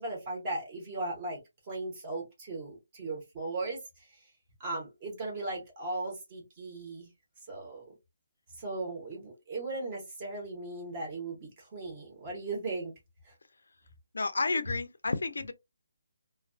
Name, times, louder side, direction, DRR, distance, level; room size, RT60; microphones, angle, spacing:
voice 1, 0.0-1.4 1.7-3.8 4.6-7.1 7.5-7.8 8.6-12.9, right 2 dB, 20° right, 0.9 m, -37 dB
voice 2, 14.1-15.5, left 3 dB, 90° left, 0.5 m, -31 dB
2.3 x 2.2 x 2.4 m
hypercardioid pair, 175°, 0 cm